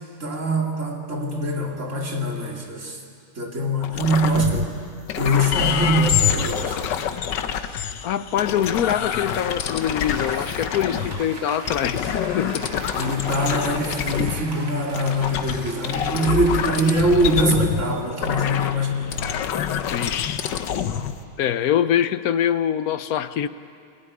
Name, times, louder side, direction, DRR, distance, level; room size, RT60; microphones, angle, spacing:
voice 1, 0.2-3.0 3.4-4.7 5.1-6.8 12.9-19.1, equal, 45° right, 0 dB, 2.9 m, -23 dB
sound 1, 3.8-4.8 5.1-11.2 11.7-14.5 14.9-21.1, left 8 dB, 90° left, 1.6 m, -26 dB
voice 2, 8.0-12.8 19.9-20.4 21.4-23.5, left 10 dB, 65° left, 13 dB, 1.1 m, -24 dB
Applause / Crowd, 8.4-17.8 18.2-18.3, right 2 dB, 80° right, 3.1 m, -40 dB
22.0 x 16.0 x 9.8 m, 2.3 s
omnidirectional pair, 1.9 m